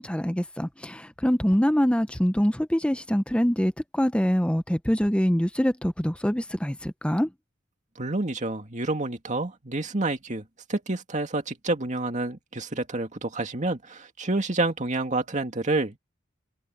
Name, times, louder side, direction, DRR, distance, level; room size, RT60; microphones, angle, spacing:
voice 1, 0.0-7.3, equal, 5° left, 0.8 m, -24 dB
voice 2, 8.0-10.4 10.7-16.0, right 2 dB, 35° right, 2.2 m, -28 dB
head